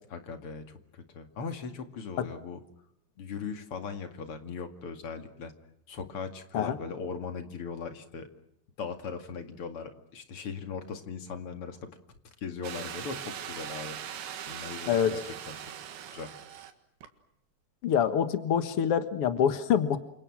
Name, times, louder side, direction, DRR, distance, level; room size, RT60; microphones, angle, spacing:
voice 1, 0.1-2.6 3.2-5.5 5.9-8.3 8.8-11.8 12.4-14.0 14.5-15.2 15.5-15.6 16.1-16.3, left 5 dB, 40° left, 7 dB, 2.5 m, -39 dB
sound 1, 12.6-16.7 17.0-17.1, right 9 dB, 70° right, 3.7 m, -40 dB
voice 2, 17.8-20.0, left 8 dB, 80° left, 10 dB, 1.3 m, -25 dB
29.0 x 27.5 x 6.2 m, 0.76 s
omnidirectional pair, 4.7 m